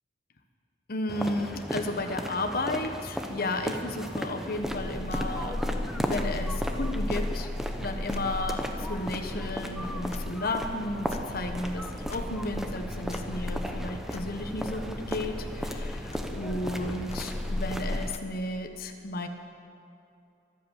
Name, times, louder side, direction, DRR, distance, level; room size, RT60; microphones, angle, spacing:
voice 1, 0.9-5.6 6.0-7.5 7.8-19.3, left 2 dB, 50° left, 5 dB, 1.3 m, -33 dB
sound 1, 1.1-18.1, equal, ahead, 0.9 m, -36 dB
sound 2, 4.6-18.2, left 1 dB, 35° left, 0.7 m, -36 dB
24.0 x 8.2 x 7.3 m, 2.7 s
head